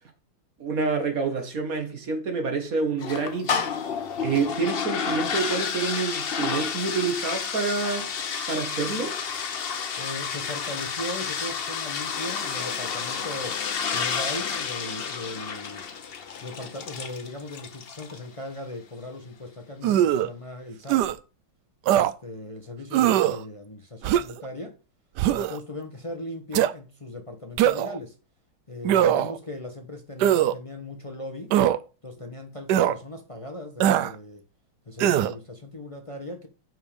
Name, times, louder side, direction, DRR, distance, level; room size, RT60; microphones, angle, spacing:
voice 1, 0.6-3.7 4.2-8.1 8.5-9.2, right 4 dB, 45° right, 1.9 m, -27 dB
sound 1, 3.0-18.3, left 6 dB, 90° left, 0.5 m, -30 dB
voice 2, 10.0-13.6 13.9-15.8 16.4-21.0 22.0-24.7 25.3-28.1 28.7-31.5 32.0-34.4 34.9-36.5, left 1 dB, 30° left, 0.6 m, -38 dB
sound 2, 19.8-20.3 20.9-21.1 21.9-22.1 22.9-23.4 24.0-24.4 25.2-25.6 26.5-26.7 27.6-28.0 28.8-29.4 30.2-30.5 31.5-31.8 32.7-32.9 33.8-34.1 35.0-35.3, right 11 dB, 70° right, 1.0 m, -21 dB
6.1 x 5.5 x 6.8 m
omnidirectional pair, 2.2 m